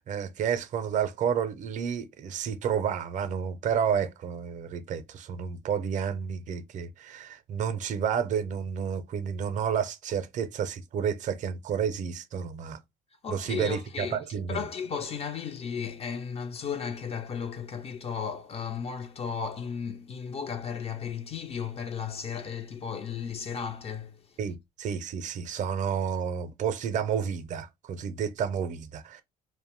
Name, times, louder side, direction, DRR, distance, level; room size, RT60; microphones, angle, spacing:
voice 1, 0.0-12.8 13.3-14.6 24.4-29.2, right 7 dB, 50° right, 0.5 m, -30 dB
voice 2, 13.2-14.2 14.5-24.4, left 6 dB, 35° left, 0.4 m, -35 dB
2.6 x 2.1 x 2.9 m
cardioid pair, 110°, 17 cm